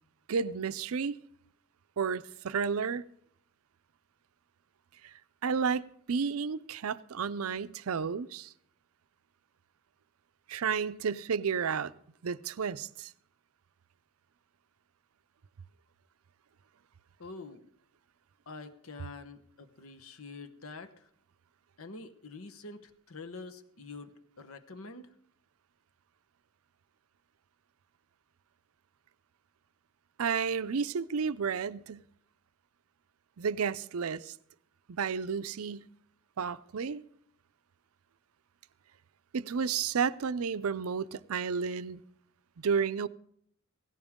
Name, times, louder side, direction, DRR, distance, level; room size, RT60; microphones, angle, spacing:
voice 1, 0.3-1.2 2.0-3.0 5.0-5.1 5.4-8.5 10.5-11.9 12.2-13.1 30.2-32.1 33.4-34.3 34.9-35.9 36.4-37.0 39.3-42.0 42.6-43.1, right 6 dB, 80° right, 0.5 m, -32 dB
voice 2, 17.2-17.6 18.5-21.1 21.8-25.1, left 3 dB, 75° left, 1.1 m, -46 dB
17.0 x 16.5 x 3.7 m
head